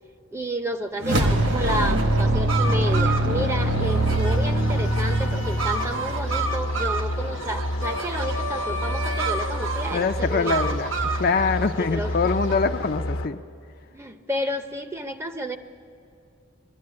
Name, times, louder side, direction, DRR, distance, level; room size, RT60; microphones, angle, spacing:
voice 1, 0.3-10.9 11.9-12.1 13.9-15.6, equal, 10° right, 7 dB, 0.7 m, -31 dB
sound 1, 1.0-6.4, right 1 dB, 55° right, 1.5 m, -23 dB
sound 2, 1.2-12.6, right 3 dB, 75° right, 1.3 m, -31 dB
sound 3, 3.4-13.3, left 1 dB, 80° left, 1.1 m, -30 dB
voice 2, 9.9-10.9 11.2-13.4, left 4 dB, 45° left, 8 dB, 0.5 m, -24 dB
21.5 x 13.5 x 9.6 m, 2.6 s
head